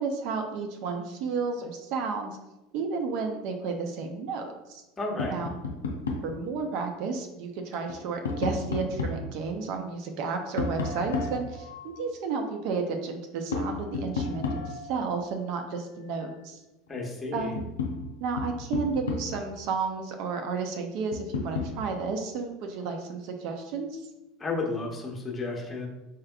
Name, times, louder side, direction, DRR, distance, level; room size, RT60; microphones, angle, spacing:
voice 1, 0.0-2.4 2.7-4.8 5.3-5.5 6.2-11.7 12.0-16.6 17.3-17.7 18.2-24.0, right 4 dB, 60° right, 4 dB, 0.5 m, -32 dB
voice 2, 5.0-5.4 16.9-17.5 24.4-25.9, left 3 dB, 25° left, 0 dB, 1.1 m, -32 dB
Tap, 5.2-6.4 7.7-9.3 10.6-12.0 13.5-15.0 16.9-17.0 17.3-19.5 21.1-21.8, left 3 dB, 85° left, 0.4 m, -32 dB
4.3 x 3.4 x 2.3 m, 0.99 s
hypercardioid pair, 80°, 0 cm